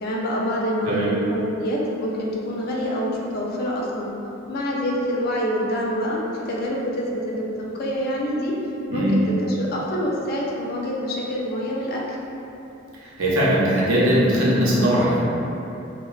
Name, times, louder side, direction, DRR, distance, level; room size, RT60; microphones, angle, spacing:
voice 1, 0.0-4.1 4.5-8.6 8.9-12.0, equal, 50° left, -3 dB, 0.4 m, -26 dB
voice 2, 8.9-9.2 13.2-15.2, equal, 70° right, -7 dB, 0.6 m, -19 dB
2.8 x 2.1 x 2.4 m, 2.8 s
head